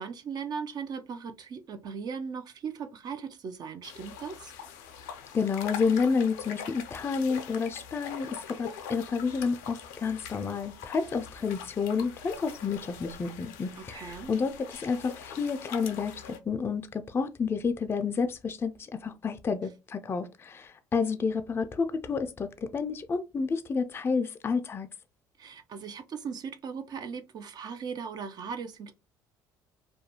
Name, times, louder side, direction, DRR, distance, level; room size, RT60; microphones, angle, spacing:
voice 1, 0.0-4.5 13.8-14.3 25.4-28.9, right 6 dB, 50° right, 0.5 m, -38 dB
sound 1, 3.8-16.4, left 7 dB, 90° left, 0.4 m, -43 dB
voice 2, 5.3-24.9, left 5 dB, 25° left, 0.3 m, -30 dB
2.4 x 2.2 x 2.8 m
supercardioid pair, 70°, 9 cm